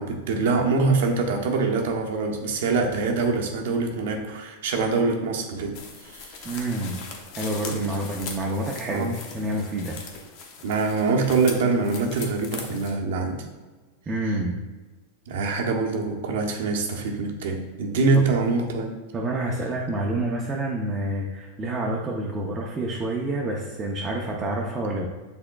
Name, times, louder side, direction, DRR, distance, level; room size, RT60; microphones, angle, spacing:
voice 1, 0.0-6.6 7.7-7.9 8.9-9.1 10.6-13.4 15.3-18.9, right 4 dB, 75° right, 2 dB, 0.8 m, -24 dB
sound 1, 5.7-12.9, left 5 dB, 55° left, 0.8 m, -40 dB
voice 2, 6.4-7.0 7.4-9.1 9.3-10.0 14.1-14.6 18.1-18.2 19.1-25.1, right 1 dB, 20° right, -2 dB, 0.6 m, -28 dB
6.1 x 3.5 x 2.3 m, 1.3 s
supercardioid pair, 125°, 0 cm